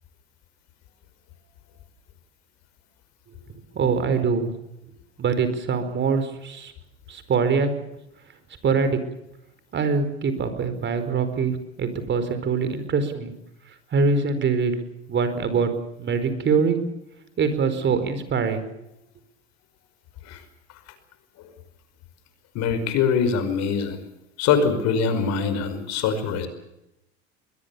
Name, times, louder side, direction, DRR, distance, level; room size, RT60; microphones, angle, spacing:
voice 1, 3.7-4.5 5.2-6.7 7.1-7.7 8.6-9.0 9.7-13.3 13.9-14.7 15.1-15.7 16.0-16.8 17.4-18.6, right 5 dB, 35° right, 10 dB, 4.7 m, -23 dB
voice 2, 22.5-24.0 24.4-26.5, left 6 dB, 55° left, 10 dB, 5.4 m, -23 dB
22.5 x 21.5 x 7.1 m, 0.87 s
hypercardioid pair, 95°, 32 cm